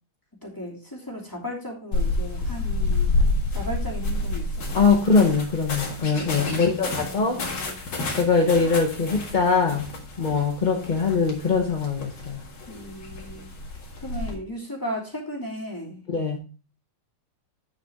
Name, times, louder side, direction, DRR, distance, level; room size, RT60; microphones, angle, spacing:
voice 1, 0.4-3.1 3.5-4.8 6.1-7.8 12.7-13.5 14.0-16.0, equal, 10° left, -2 dB, 2.5 m, -36 dB
sound 1, 1.9-14.3, left 2 dB, 80° left, 2.7 m, -29 dB
voice 2, 4.7-7.4 8.2-9.9 10.2-12.4 16.1-16.4, left 4 dB, 35° left, 1 dB, 0.7 m, -22 dB
9.1 x 7.0 x 3.5 m, 0.36 s
omnidirectional pair, 2.2 m